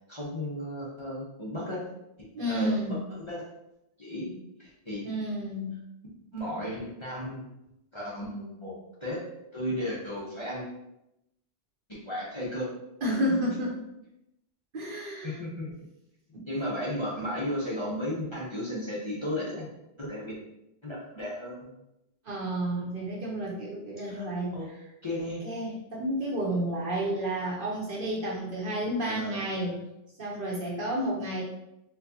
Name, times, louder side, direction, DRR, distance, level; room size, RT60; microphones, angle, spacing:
voice 1, 0.1-1.8 2.5-3.4 4.0-4.3 4.6-5.0 6.3-7.4 7.9-9.2 9.5-10.6 11.9-12.7 15.2-15.7 16.5-19.7 20.0-20.4 20.8-21.7 24.0-24.3 24.5-24.7 25.0-25.4 29.0-29.7, left 1 dB, 30° left, -7 dB, 0.8 m, -34 dB
voice 2, 2.3-2.9 5.0-5.7 13.0-13.8 14.7-15.4 16.3-16.4 22.2-24.6 25.4-29.8 30.2-31.4, right 1 dB, 50° right, -4 dB, 1.0 m, -31 dB
4.4 x 2.3 x 2.8 m, 0.86 s
omnidirectional pair, 1.2 m